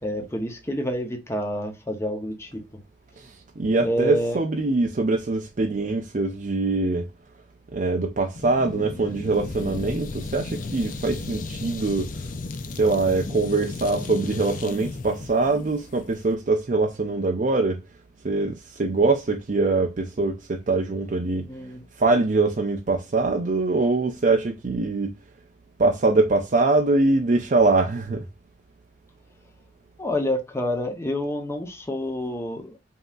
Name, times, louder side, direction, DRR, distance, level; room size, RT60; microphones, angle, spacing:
voice 1, 0.0-2.6 3.8-4.4 21.4-21.9 30.0-32.8, equal, 15° left, 0.7 m, -28 dB
voice 2, 3.2-7.1 7.7-12.3 12.8-17.8 18.2-21.5 22.0-25.1 25.8-28.2, right 3 dB, 45° right, 0.5 m, -23 dB
sound 1, 8.3-16.3, left 3 dB, 50° left, 0.5 m, -35 dB
5.2 x 2.8 x 2.4 m
head